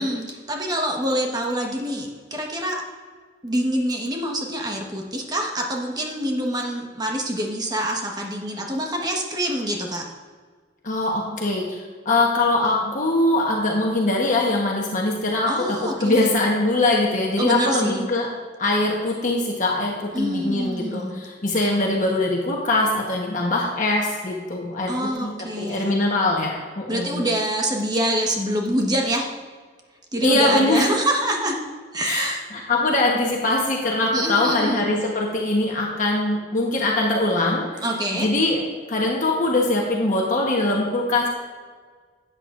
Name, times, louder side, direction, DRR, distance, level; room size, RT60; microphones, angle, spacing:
voice 1, 0.0-2.8 3.4-10.0 15.4-16.3 17.4-18.1 20.1-21.1 24.9-26.0 26.9-29.3 30.1-31.6 31.9-32.4 34.1-34.9 37.8-38.3, right 1 dB, 25° right, 0 dB, 1.3 m, -25 dB
voice 2, 10.8-18.3 18.6-25.3 25.6-27.3 30.2-30.9 32.0-37.8 38.1-38.6 38.9-41.3, left 2 dB, 45° left, -2 dB, 1.1 m, -22 dB
12.5 x 8.6 x 2.5 m, 1.5 s
head